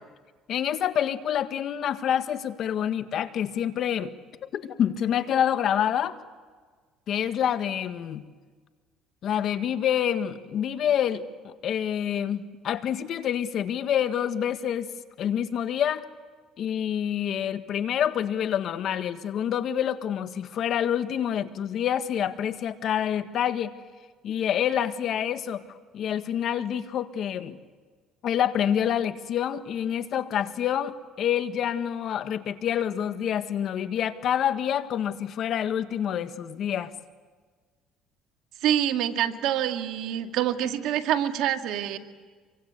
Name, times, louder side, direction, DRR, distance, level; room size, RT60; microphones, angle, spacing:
voice 1, 0.5-4.1 4.5-6.2 7.1-8.2 9.2-16.0 16.6-23.7 24.2-25.6 25.9-27.6 28.2-36.9, left 9 dB, 55° left, 10 dB, 1.6 m, -27 dB
voice 2, 38.6-42.0, right 11 dB, 75° right, 5 dB, 2.1 m, -26 dB
26.5 x 24.0 x 8.2 m, 1.5 s
cardioid pair, 105°, 0 cm